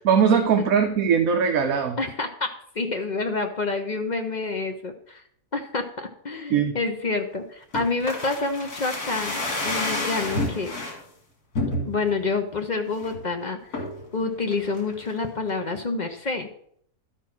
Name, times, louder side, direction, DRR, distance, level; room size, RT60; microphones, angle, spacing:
voice 1, 0.0-2.0 6.5-6.7, right 7 dB, 65° right, 5 dB, 1.2 m, -20 dB
voice 2, 2.0-5.2 5.5-10.7 11.9-13.8 14.1-16.5, left 3 dB, 40° left, 5 dB, 0.6 m, -28 dB
sound 1, 7.7-11.0 11.5-12.2 12.6-12.7 12.9-13.2 13.7-14.1 14.5-15.2 15.5-15.6, left 2 dB, 65° left, 2.6 m, -29 dB
12.0 x 4.5 x 6.0 m, 0.66 s
omnidirectional pair, 1.7 m